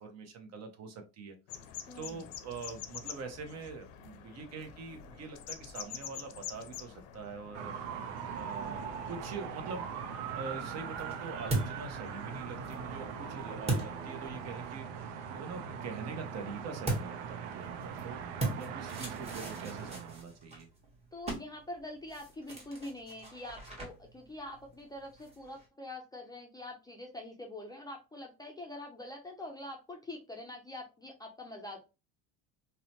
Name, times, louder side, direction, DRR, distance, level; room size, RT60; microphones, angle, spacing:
voice 1, 0.0-1.4 1.9-7.7 8.3-20.7, right 5 dB, 45° right, 5 dB, 0.7 m, -44 dB
sound 1, 1.5-14.7, left 9 dB, 75° left, 0.6 m, -48 dB
voice 2, 1.9-2.3 21.1-31.8, left 1 dB, 10° left, 1 dB, 0.4 m, -45 dB
sound 2, 7.5-20.2, right 7 dB, 85° right, 0.5 m, -41 dB
sound 3, 10.4-14.8 16.8-25.7, right 2 dB, 20° right, 1.1 m, -40 dB
2.8 x 2.1 x 2.7 m, 0.29 s
supercardioid pair, 100°, 35 cm